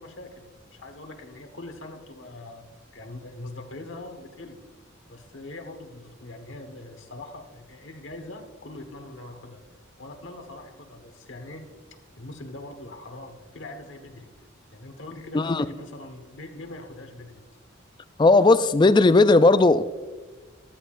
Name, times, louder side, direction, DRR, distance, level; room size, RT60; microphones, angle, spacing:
voice 1, 0.0-2.6 2.9-4.6 5.1-9.6 10.0-11.7 12.2-14.3 14.7-17.4, left 2 dB, 70° left, 1.3 m, -42 dB
voice 2, 15.3-15.7 18.2-19.9, left 3 dB, 25° left, 0.3 m, -17 dB
14.0 x 12.0 x 2.5 m
head